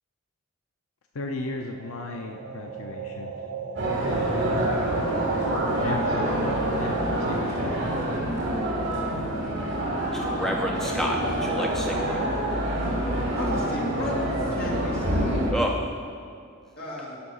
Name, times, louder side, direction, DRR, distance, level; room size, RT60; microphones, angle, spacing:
voice 1, 1.1-3.3 5.8-7.9, left 3 dB, 75° left, 2 dB, 0.6 m, -35 dB
sound 1, 1.6-9.6, right 5 dB, 85° right, 1.2 m, -36 dB
sound 2, 3.8-15.5, right 1 dB, 55° right, 2.4 m, -27 dB
voice 2, 10.1-12.2 15.5-15.8, equal, ahead, 0 dB, 0.4 m, -29 dB
voice 3, 13.3-14.2 14.5-15.3 16.8-17.2, left 1 dB, 45° left, -4 dB, 2.2 m, -34 dB
11.0 x 6.3 x 5.5 m, 2.3 s
head